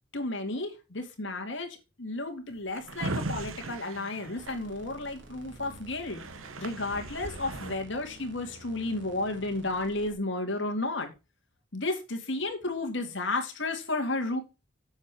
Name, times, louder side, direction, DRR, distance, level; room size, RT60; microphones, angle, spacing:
voice 1, 0.1-6.2 6.6-11.1 11.7-14.4, left 2 dB, 65° left, 2.3 m, -32 dB
Drawer open or close, 2.5-5.3 5.8-5.9 6.0-7.8, right 2 dB, 85° right, 1.1 m, -38 dB
sound 1, 4.4-10.1, right 1 dB, 65° right, 2.3 m, -50 dB
7.6 x 7.3 x 4.8 m
head